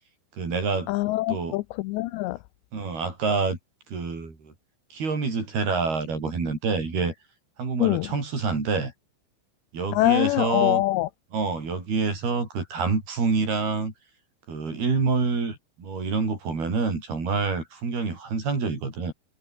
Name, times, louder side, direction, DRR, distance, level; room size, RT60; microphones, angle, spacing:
voice 1, 0.4-0.9 1.3-1.6 2.7-3.6 3.9-4.5 4.9-7.1 7.6-8.9 9.7-10.8 11.3-13.9 14.5-19.1, right 4 dB, 55° right, 8.7 m, -27 dB
voice 2, 0.9-2.4 7.8-8.1 9.9-11.1, left 18 dB, 80° left, 2.7 m, -24 dB
omnidirectional pair, 5.4 m